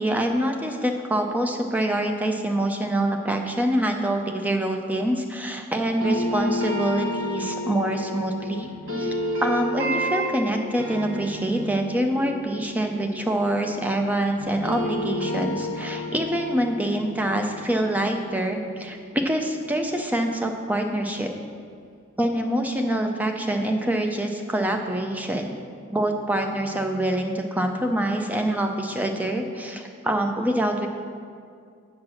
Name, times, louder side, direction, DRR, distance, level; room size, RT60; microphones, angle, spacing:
voice 1, 0.0-8.7 9.0-9.1 9.4-21.3 22.2-25.5 25.9-30.9, right 1 dB, 5° right, 3 dB, 0.5 m, -25 dB
sound 1, 6.0-14.1 14.4-19.3, left 1 dB, 60° right, 1.4 m, -31 dB
8.4 x 4.6 x 6.3 m, 2.3 s
head